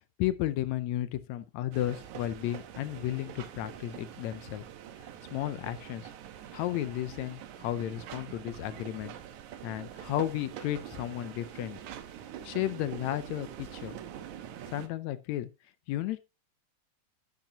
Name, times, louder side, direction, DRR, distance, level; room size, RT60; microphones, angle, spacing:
voice 1, 0.2-4.7 5.3-6.1 6.5-9.1 9.6-11.8 12.4-14.0 14.7-15.5 15.9-16.2, left 13 dB, 75° left, 1.8 m, -33 dB
sound 1, 1.7-14.9, right 10 dB, 80° right, 2.4 m, -45 dB
12.0 x 8.4 x 2.8 m
omnidirectional pair, 3.4 m